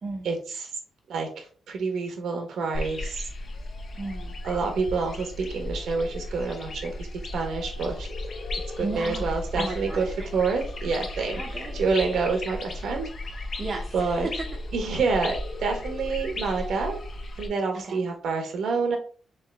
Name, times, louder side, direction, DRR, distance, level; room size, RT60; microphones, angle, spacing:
voice 1, 0.2-0.7 1.1-3.3 4.4-7.1 7.3-8.1 8.8-10.1 10.3-11.4 11.7-13.3 13.9-14.3 14.7-17.0 17.4-19.0, right 4 dB, 75° right, 4 dB, 1.2 m, -28 dB
sound 1, 2.7-17.5, left 2 dB, 40° left, 0.7 m, -35 dB
voice 2, 3.9-4.3 8.8-10.3 11.3-11.8 13.6-14.5 17.7-18.1, right 3 dB, 35° right, 0 dB, 0.8 m, -35 dB
3.7 x 3.3 x 3.4 m, 0.40 s
wide cardioid pair, 150°, 0 cm